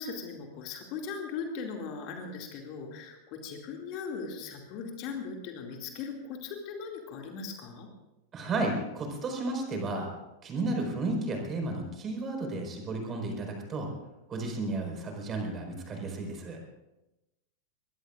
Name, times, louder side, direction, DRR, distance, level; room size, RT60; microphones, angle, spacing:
voice 1, 0.0-7.9, left 5 dB, 40° left, 2 dB, 2.5 m, -39 dB
voice 2, 8.3-10.1 10.4-13.9 14.3-16.6, right 2 dB, 25° right, 2 dB, 4.9 m, -33 dB
23.0 x 21.5 x 2.5 m, 0.98 s
figure-of-eight pair, 90°, 0 cm